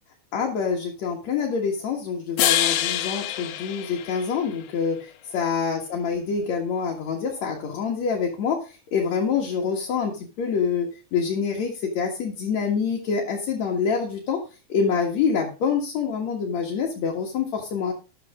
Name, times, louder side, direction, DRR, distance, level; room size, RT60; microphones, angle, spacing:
voice 1, 0.3-5.0 5.3-8.6 8.9-14.4 14.7-17.9, left 6 dB, 55° left, 0 dB, 2.6 m, -26 dB
sound 1, 2.4-4.7, left 12 dB, 80° left, 2.7 m, -26 dB
13.5 x 9.1 x 3.7 m, 0.33 s
omnidirectional pair, 4.4 m